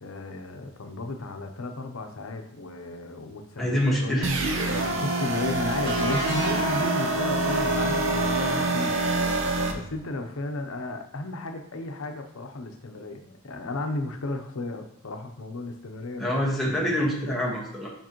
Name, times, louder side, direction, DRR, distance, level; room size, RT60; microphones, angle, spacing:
voice 1, 0.0-16.3 17.2-17.3, left 2 dB, 85° left, 5 dB, 0.7 m, -34 dB
voice 2, 3.6-4.3 16.2-17.9, equal, ahead, -5 dB, 1.4 m, -26 dB
sound 1, 4.2-9.7, right 2 dB, 65° right, 0.9 m, -26 dB
sound 2, 5.8-9.4, equal, 45° right, 2.7 m, -31 dB
7.3 x 5.3 x 3.0 m, 0.74 s
head